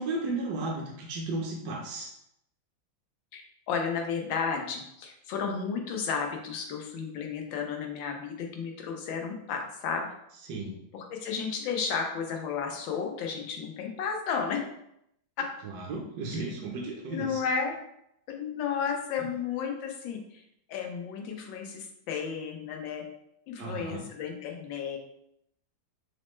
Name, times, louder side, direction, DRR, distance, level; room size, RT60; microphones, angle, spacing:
voice 1, 0.0-2.1 10.5-10.7 15.6-17.4 23.6-24.1, right 2 dB, 70° right, -2 dB, 1.2 m, -34 dB
voice 2, 3.3-10.1 10.9-14.6 15.4-15.5 16.3-16.4 17.1-17.7 18.3-20.4 20.7-23.0 23.5-25.0, left 6 dB, 85° left, 2 dB, 1.4 m, -33 dB
5.0 x 2.1 x 3.0 m, 0.77 s
omnidirectional pair, 2.0 m